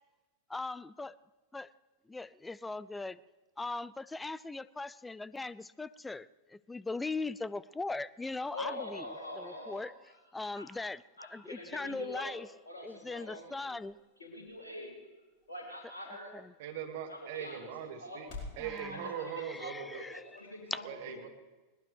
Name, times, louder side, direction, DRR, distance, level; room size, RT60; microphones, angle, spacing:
voice 1, 0.5-1.2 1.5-1.7 2.1-3.2 3.6-9.0 9.4-9.9 10.3-11.0 11.3-12.5 12.8-14.0 16.1-16.5 18.6-19.1 19.5-20.2 20.7-20.8, left 3 dB, 10° left, 19 dB, 0.4 m, -39 dB
voice 2, 8.5-9.9 10.5-10.6 11.2-12.4 12.6-13.8 14.2-14.9 15.5-16.3 17.1-17.7 18.0-18.2 18.9-19.3 19.6-21.2, left 1 dB, 70° left, -4 dB, 3.0 m, -44 dB
sound 1, 12.4-18.7, left 3 dB, 40° left, 4.7 m, -53 dB
voice 3, 16.6-18.3 18.6-20.0 20.8-21.3, right 9 dB, 50° right, 4 dB, 2.1 m, -40 dB
21.0 x 19.0 x 3.4 m, 1.2 s
figure-of-eight pair, 90°, 0 cm